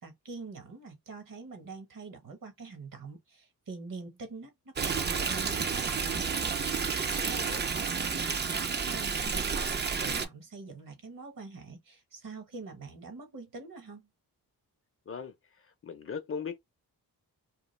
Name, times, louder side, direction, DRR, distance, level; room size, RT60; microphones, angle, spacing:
voice 1, 0.0-6.3 7.1-14.1, right 4 dB, 55° right, 1.1 m, -45 dB
Stream, 4.8-10.3, right 5 dB, 30° right, 0.4 m, -31 dB
voice 2, 15.8-16.6, left 6 dB, 35° left, 0.5 m, -38 dB
2.3 x 2.3 x 3.1 m
cardioid pair, 80°, 39 cm